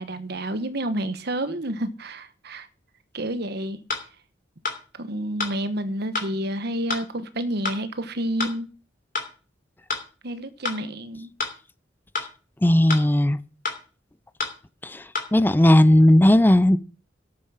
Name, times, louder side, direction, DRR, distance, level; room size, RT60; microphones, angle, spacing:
voice 1, 0.0-2.7 3.1-3.8 5.0-8.7 10.2-11.3, right 1 dB, 60° right, 1.2 m, -29 dB
sound 1, 3.9-4.1 4.6-4.8 5.4-5.6 6.1-6.3 6.9-7.1 7.6-7.8 8.4-8.6 9.1-9.3 9.9-10.1 10.6-10.8 11.4-11.6 12.1-12.3 12.9-13.1 13.6-13.8 14.4-14.6 15.1-15.2, left 4 dB, 50° left, 3.0 m, -28 dB
voice 2, 12.6-13.4 14.8-15.0 15.3-16.8, left 1 dB, 10° left, 0.5 m, -16 dB
12.0 x 8.5 x 5.6 m
head